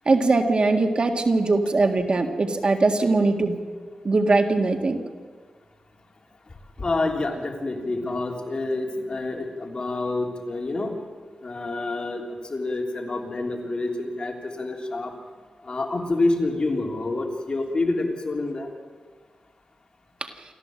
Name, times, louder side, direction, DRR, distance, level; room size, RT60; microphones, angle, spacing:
voice 1, 0.1-3.6 4.0-5.0 20.2-20.3, right 3 dB, 50° right, 5 dB, 1.7 m, -21 dB
voice 2, 6.8-10.9 11.4-12.2 12.5-15.1 15.6-18.7, left 2 dB, 45° left, 1 dB, 3.3 m, -27 dB
28.0 x 13.5 x 7.7 m, 1.5 s
wide cardioid pair, 95°, 2 cm